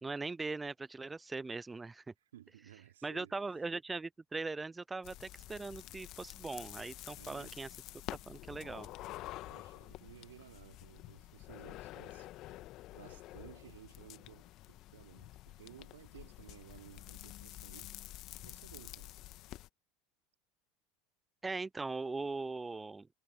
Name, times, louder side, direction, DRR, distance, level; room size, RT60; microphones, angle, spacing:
voice 1, 0.0-2.1 3.0-7.7 8.3-8.9 21.4-23.1, right 3 dB, 15° right, 0.7 m, -40 dB
voice 2, 2.3-3.3 7.1-7.6 9.4-12.3 12.9-17.9 18.4-19.1, right 12 dB, 70° right, 3.3 m, -56 dB
sound 1, 5.0-19.7, left 16 dB, 50° left, 1.6 m, -49 dB
figure-of-eight pair, 75°, 0 cm